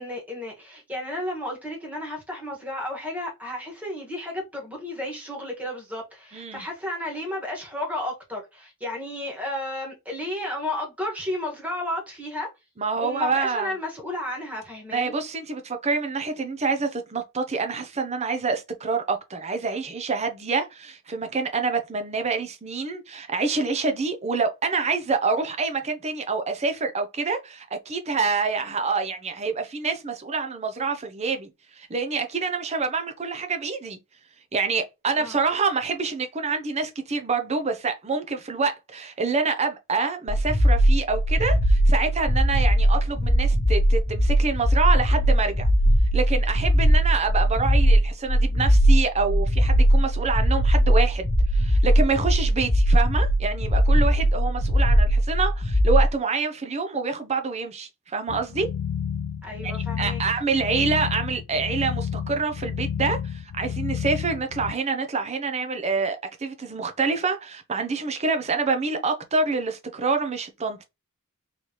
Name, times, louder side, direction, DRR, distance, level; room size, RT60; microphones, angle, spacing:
voice 1, 0.0-12.5 13.0-15.1 35.1-35.4 59.4-60.2, left 1 dB, 5° right, 1.5 m, -33 dB
voice 2, 6.3-6.6 12.8-13.7 14.9-31.5 31.8-34.0 34.5-45.7 46.1-51.3 51.5-58.7 59.6-59.7 60.0-70.8, right 4 dB, 30° right, 0.6 m, -27 dB
sound 1, 40.3-56.1, equal, 55° left, 0.7 m, -20 dB
sound 2, 58.3-64.7, left 8 dB, 75° left, 0.3 m, -31 dB
4.0 x 3.2 x 2.9 m
head